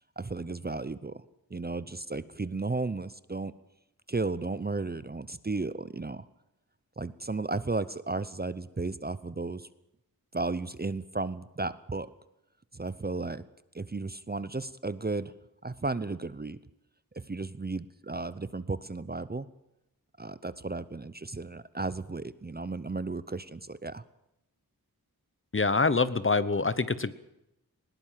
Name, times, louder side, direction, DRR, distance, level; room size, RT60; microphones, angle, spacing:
voice 1, 0.2-1.2 1.5-3.5 4.1-6.3 7.0-9.7 10.3-12.1 12.7-13.4 13.7-15.3 15.6-16.6 17.1-19.5 20.2-24.0, right 3 dB, 25° right, 15 dB, 0.7 m, -34 dB
voice 2, 25.5-27.1, left 4 dB, 35° left, 15 dB, 1.0 m, -25 dB
20.0 x 18.5 x 7.5 m, 0.86 s
wide cardioid pair, 95°, 38 cm